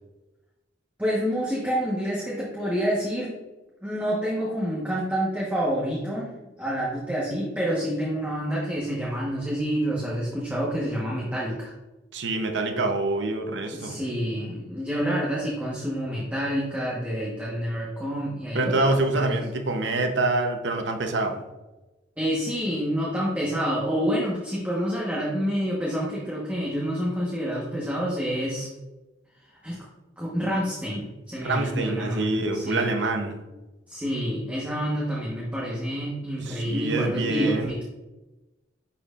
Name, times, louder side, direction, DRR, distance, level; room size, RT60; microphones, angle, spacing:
voice 1, 1.0-3.4 3.8-6.3 6.6-11.7 13.7-19.4 22.2-28.7 29.6-29.8 30.2-32.9 33.9-37.8, equal, 10° right, -6 dB, 1.2 m, -28 dB
voice 2, 12.1-14.0 18.5-21.4 31.4-33.4 36.4-37.7, right 2 dB, 75° right, 4 dB, 0.8 m, -26 dB
10.5 x 4.3 x 2.4 m, 1.1 s
head